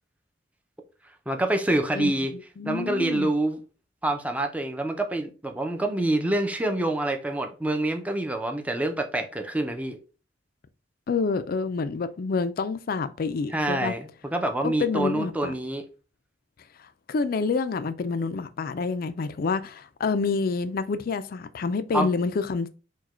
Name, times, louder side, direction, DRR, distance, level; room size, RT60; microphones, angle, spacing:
voice 1, 1.3-2.3 2.7-3.6 4.0-10.0 13.5-15.8 21.9-22.1, right 1 dB, 10° right, 0.5 m, -26 dB
voice 2, 1.9-3.3 11.1-13.9 14.6-15.5 17.1-22.7, left 4 dB, 55° left, 0.4 m, -28 dB
4.7 x 2.2 x 4.2 m
head